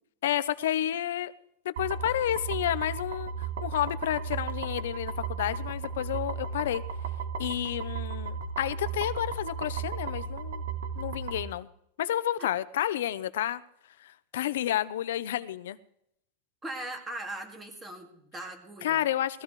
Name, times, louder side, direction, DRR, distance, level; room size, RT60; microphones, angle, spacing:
voice 1, 0.2-1.3 1.6-3.3 3.6-6.8 7.4-10.6 11.0-11.7 12.0-13.6 14.0-15.8 18.8-19.4, left 12 dB, 75° left, 14 dB, 0.7 m, -30 dB
sound 1, 1.8-11.4, right 5 dB, 85° right, 2.9 m, -35 dB
voice 2, 16.6-19.1, right 1 dB, 10° right, 4 dB, 2.2 m, -40 dB
20.0 x 15.0 x 3.2 m, 0.74 s
supercardioid pair, 170°, 0 cm